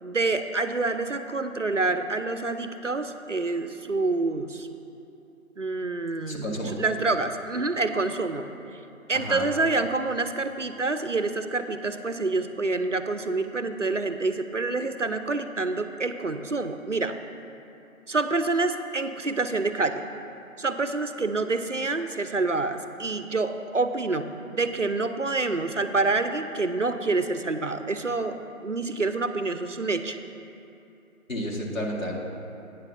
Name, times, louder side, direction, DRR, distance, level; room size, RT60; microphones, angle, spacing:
voice 1, 0.0-4.7 5.6-8.8 9.1-17.2 18.1-20.0 20.6-24.3 24.5-30.2, right 3 dB, 60° right, 9 dB, 0.5 m, -27 dB
voice 2, 6.3-6.8 9.1-9.5 31.3-32.2, equal, 65° left, -2 dB, 1.9 m, -31 dB
9.0 x 6.8 x 5.4 m, 2.8 s
figure-of-eight pair, 180°, 43 cm